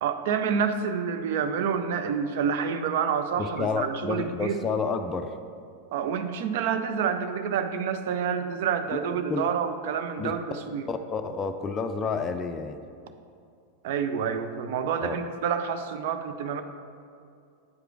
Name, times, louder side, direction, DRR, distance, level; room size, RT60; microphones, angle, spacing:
voice 1, 0.0-4.6 5.9-10.9 13.8-16.6, right 7 dB, 50° right, 8 dB, 0.5 m, -28 dB
voice 2, 3.4-5.4 9.0-9.5 10.2-10.3 10.9-12.8 15.0-15.2, left 5 dB, 20° left, 6 dB, 0.4 m, -30 dB
8.3 x 4.9 x 4.5 m, 2.4 s
figure-of-eight pair, 90°, 0 cm